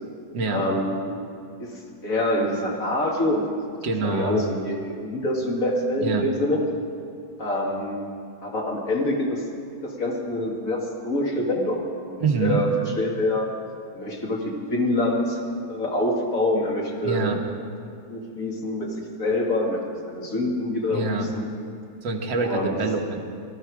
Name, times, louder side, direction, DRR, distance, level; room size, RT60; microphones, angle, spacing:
voice 1, 0.4-1.1 1.6-3.5 4.0-6.6 7.4-8.1 8.4-9.4 9.8-11.8 12.1-12.7 13.0-13.5 13.9-15.4 15.7-17.3 18.1-19.8 20.0-21.5 22.4-22.7, left 1 dB, 40° left, -2 dB, 2.5 m, -26 dB
voice 2, 3.8-4.4 6.0-6.3 12.2-12.6 17.0-17.4 20.9-21.3 22.0-23.2, right 4 dB, 65° right, 1 dB, 2.0 m, -25 dB
19.5 x 13.0 x 4.8 m, 2.4 s
omnidirectional pair, 2.2 m